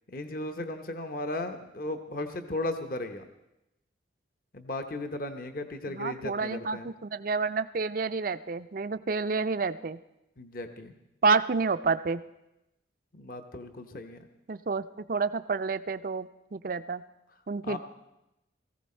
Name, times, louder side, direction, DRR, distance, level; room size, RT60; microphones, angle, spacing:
voice 1, 0.1-3.2 4.5-6.9 10.4-11.0 13.1-14.2 17.6-17.8, left 2 dB, 45° left, 7 dB, 0.9 m, -36 dB
voice 2, 5.9-10.0 11.2-12.2 14.5-17.0 17.5-17.8, right 4 dB, 45° right, 13 dB, 0.4 m, -29 dB
18.0 x 15.0 x 4.3 m, 0.90 s
head